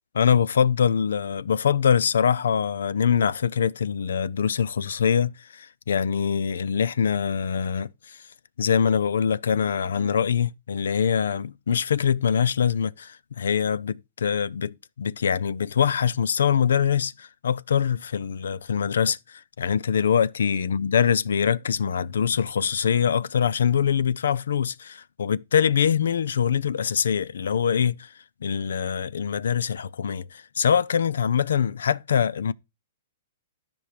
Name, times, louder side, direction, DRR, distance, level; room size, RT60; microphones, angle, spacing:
voice 1, 0.1-8.2 8.6-28.1 28.4-32.5, left 7 dB, 85° left, 0.5 m, -24 dB
13.0 x 5.4 x 5.0 m
hypercardioid pair, 175°, 0 cm